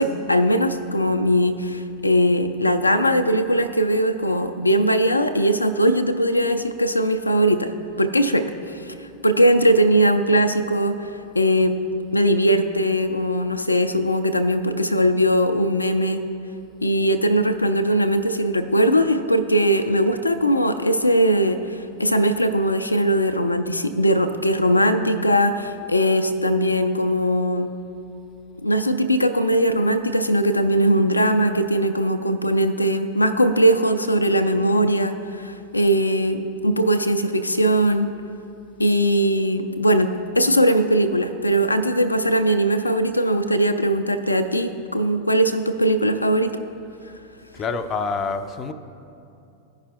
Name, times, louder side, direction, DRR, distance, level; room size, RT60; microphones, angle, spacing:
voice 1, 0.0-7.7 8.0-8.9 9.2-11.1 11.3-11.8 12.1-16.2 16.8-27.7 28.6-38.1 38.8-40.1 40.4-46.5, equal, 85° left, 7 dB, 0.4 m, -20 dB
voice 2, 47.5-48.7, left 4 dB, 25° left, 9 dB, 0.5 m, -26 dB
15.0 x 5.6 x 2.4 m, 2.6 s
figure-of-eight pair, 90°, 0 cm